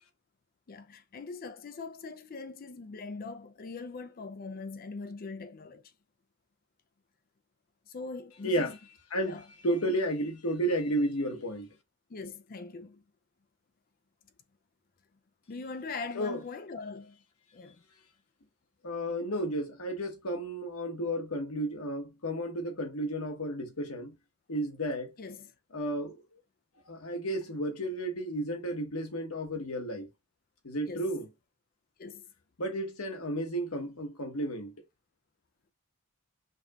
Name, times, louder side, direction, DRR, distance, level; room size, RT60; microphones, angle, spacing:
voice 1, 0.7-5.9 7.9-8.8 9.2-9.4 12.1-13.0 15.5-17.2 17.5-17.8 25.2-25.5 30.9-31.1 32.0-32.3, left 4 dB, 40° left, 0.4 m, -41 dB
voice 2, 9.1-11.7 16.1-16.4 18.8-24.1 24.5-25.1 25.7-26.2 26.9-30.1 30.6-31.3 32.6-34.7, right 1 dB, 90° left, 1.2 m, -32 dB
5.3 x 2.8 x 2.3 m
head